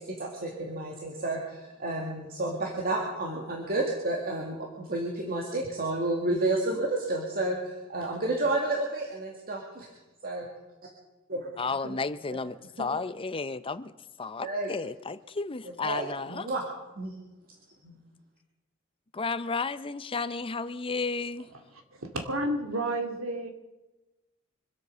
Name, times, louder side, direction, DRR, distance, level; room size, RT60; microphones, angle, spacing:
voice 1, 0.0-9.9 10.2-10.5 11.3-11.6 11.8-12.0 14.4-14.7 15.8-16.6 17.0-17.1 17.8-18.0, right 2 dB, 45° right, 2.2 m, -31 dB
voice 2, 11.6-13.9 14.2-16.5 19.1-21.5, left 4 dB, 25° left, 0.6 m, -33 dB
voice 3, 21.9-23.5, right 1 dB, 70° right, 2.4 m, -31 dB
25.0 x 8.5 x 6.8 m
head